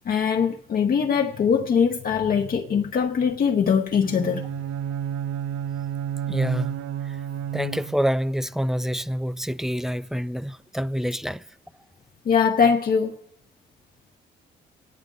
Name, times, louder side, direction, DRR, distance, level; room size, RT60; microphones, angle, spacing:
voice 1, 0.1-4.5 12.2-13.1, left 6 dB, 45° left, 0.9 m, -22 dB
Bowed string instrument, 4.0-8.2, right 9 dB, 90° right, 0.6 m, -30 dB
voice 2, 6.3-6.8 7.0-7.2 7.5-11.4, equal, ahead, 0.4 m, -27 dB
28.0 x 9.6 x 3.9 m
cardioid pair, 90°, 20 cm